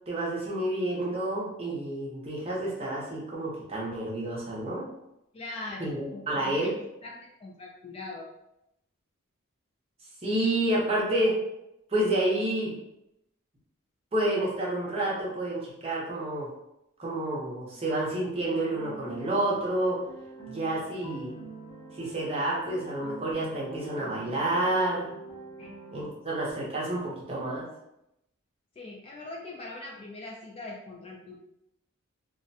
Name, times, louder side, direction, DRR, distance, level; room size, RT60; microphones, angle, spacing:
voice 1, 0.1-4.9 5.8-6.7 10.2-11.4 11.9-12.7 14.1-16.5 17.0-20.0 20.5-21.3 21.9-25.1 25.9-27.7, right 1 dB, 30° right, -5 dB, 0.7 m, -29 dB
voice 2, 5.3-6.6 7.0-8.3 25.6-25.7 28.8-31.4, left 2 dB, 25° left, -2 dB, 0.3 m, -41 dB
sound 1, 18.3-26.0, right 2 dB, 65° left, 0.9 m, -44 dB
2.4 x 2.1 x 2.6 m, 0.83 s
head